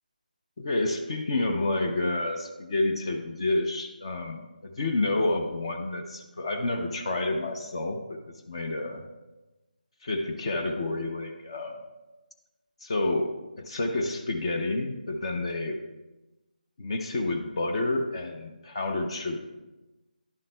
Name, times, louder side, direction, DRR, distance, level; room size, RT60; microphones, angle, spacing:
voice 1, 0.6-8.2 8.5-9.0 10.0-11.8 12.8-15.8 16.8-19.4, left 2 dB, 35° left, 4 dB, 0.6 m, -29 dB
11.0 x 7.2 x 2.2 m, 1.1 s
figure-of-eight pair, 160°, 5 cm